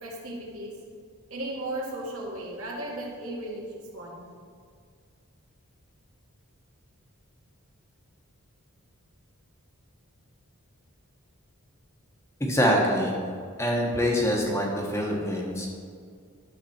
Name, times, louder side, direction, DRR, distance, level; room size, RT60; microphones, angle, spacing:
voice 1, 0.0-0.7 1.3-3.7 3.9-4.3, right 1 dB, 75° right, -3 dB, 2.0 m, -35 dB
voice 2, 12.4-13.2 13.6-15.7, equal, 10° left, -1 dB, 1.2 m, -25 dB
10.5 x 6.6 x 4.3 m, 2.1 s
head